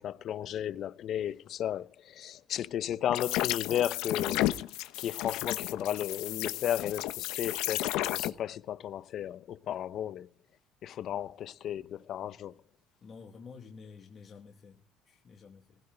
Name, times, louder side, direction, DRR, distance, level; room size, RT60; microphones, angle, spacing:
voice 1, 0.0-4.5 5.0-10.3 10.8-12.6, left 10 dB, 50° left, 0.8 m, -34 dB
sound 1, 3.1-8.3, left 15 dB, 85° left, 1.1 m, -32 dB
voice 2, 13.0-15.8, left 5 dB, 30° left, 2.3 m, -50 dB
19.0 x 16.5 x 3.9 m
cardioid pair, 145°, 0 cm